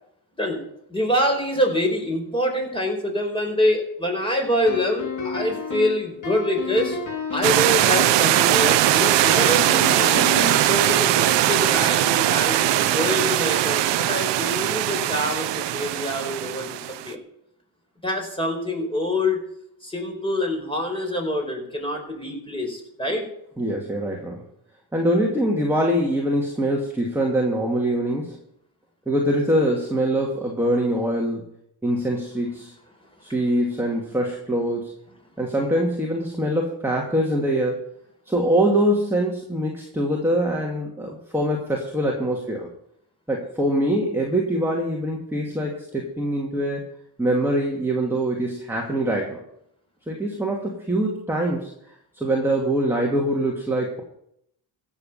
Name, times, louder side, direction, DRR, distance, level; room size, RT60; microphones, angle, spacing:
voice 1, 0.9-7.0 7.3-10.2 10.6-16.8 17.0-17.2 18.0-19.4 19.8-23.3 33.3-33.4, left 1 dB, 10° left, 1 dB, 4.6 m, -25 dB
sound 1, 4.7-7.7 9.3-10.8, left 4 dB, 40° left, 2.6 m, -30 dB
sound 2, 7.4-17.1, right 13 dB, 65° right, 0.8 m, -20 dB
voice 2, 23.6-24.4 24.9-28.4 29.1-31.4 31.8-32.7 33.2-34.9 35.4-37.8 38.3-42.7 43.3-46.8 47.2-49.4 50.1-51.7 52.2-54.0, right 1 dB, 5° right, -2 dB, 2.3 m, -23 dB
15.5 x 7.2 x 5.7 m, 0.75 s
cardioid pair, 85°, 46 cm